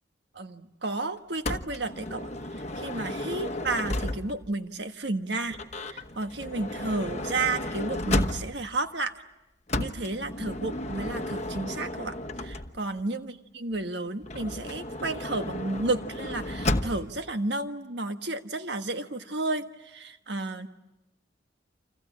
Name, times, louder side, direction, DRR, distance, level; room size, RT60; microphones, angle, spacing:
voice 1, 0.3-9.2 9.8-20.7, right 2 dB, 60° right, 7 dB, 1.5 m, -32 dB
Motor vehicle (road) / Sliding door, 1.4-4.5 5.5-8.8 9.7-13.0 14.2-17.2, left 1 dB, 35° left, 1.2 m, -33 dB
29.0 x 27.0 x 7.4 m, 0.94 s
head